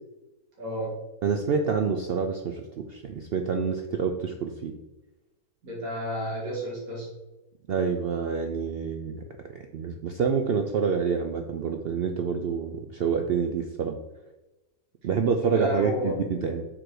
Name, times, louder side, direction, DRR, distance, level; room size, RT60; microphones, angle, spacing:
voice 1, 0.6-1.0 5.6-7.1 15.5-16.2, equal, 65° right, -5 dB, 2.4 m, -32 dB
voice 2, 1.2-4.7 7.7-9.2 9.7-14.0 15.0-16.7, right 6 dB, 85° right, 4 dB, 0.5 m, -27 dB
6.0 x 4.8 x 4.7 m, 1.0 s
omnidirectional pair, 1.6 m